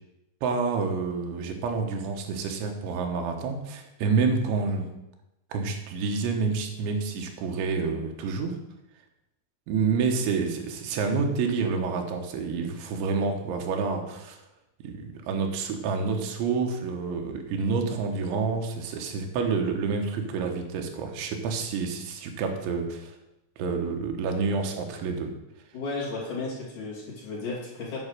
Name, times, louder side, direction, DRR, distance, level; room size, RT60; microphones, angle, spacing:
voice 1, 0.4-4.9 5.5-8.6 9.7-14.4 14.8-23.2 23.6-25.3, right 4 dB, 90° right, 3 dB, 3.5 m, -28 dB
voice 2, 25.7-28.0, left 3 dB, 50° left, -6 dB, 3.7 m, -34 dB
9.5 x 5.4 x 6.6 m, 0.91 s
omnidirectional pair, 5.2 m